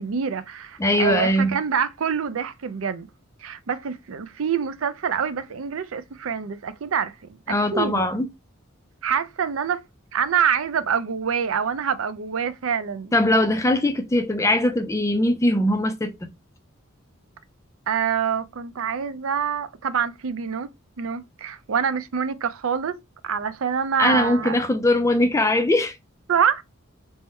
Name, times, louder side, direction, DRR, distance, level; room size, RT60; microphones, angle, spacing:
voice 1, 0.0-3.1 3.4-7.1 7.5-8.0 9.0-9.8 10.1-13.1 17.9-20.7 21.0-24.6 26.3-26.6, right 7 dB, 80° right, 0.5 m, -26 dB
voice 2, 0.8-1.6 7.5-8.3 13.1-16.3 24.0-26.0, left 1 dB, 15° left, 0.4 m, -21 dB
3.6 x 2.1 x 4.3 m
head